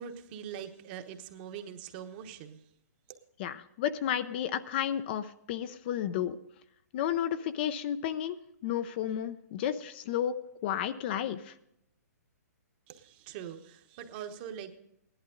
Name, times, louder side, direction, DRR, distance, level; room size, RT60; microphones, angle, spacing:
voice 1, 0.0-2.6 12.9-14.8, right 8 dB, 35° right, 7 dB, 1.1 m, -43 dB
voice 2, 3.4-6.4 6.9-10.3 10.6-11.5, left 10 dB, 35° left, 12 dB, 0.5 m, -32 dB
15.5 x 11.5 x 3.8 m, 0.76 s
hypercardioid pair, 150°, 9 cm